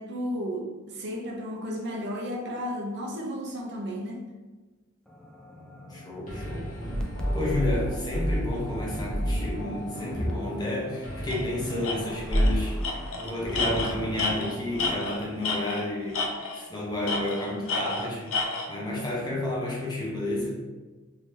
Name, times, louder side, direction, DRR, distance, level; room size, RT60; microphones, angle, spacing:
voice 1, 0.0-4.3, equal, 60° right, 0 dB, 0.6 m, -33 dB
sound 1, 5.1-14.3, equal, 5° left, 0.3 m, -31 dB
voice 2, 5.9-6.8 7.3-18.3 18.7-20.5, left 1 dB, 20° left, -3 dB, 0.8 m, -31 dB
sound 2, 6.3-15.8, equal, 45° left, 1.2 m, -38 dB
Tools, 11.3-11.4 11.8-12.0 12.3-12.5 12.8-15.9 16.1-16.7 17.1-18.7, left 3 dB, 75° left, 0.5 m, -30 dB
3.3 x 2.7 x 3.2 m, 1.2 s
head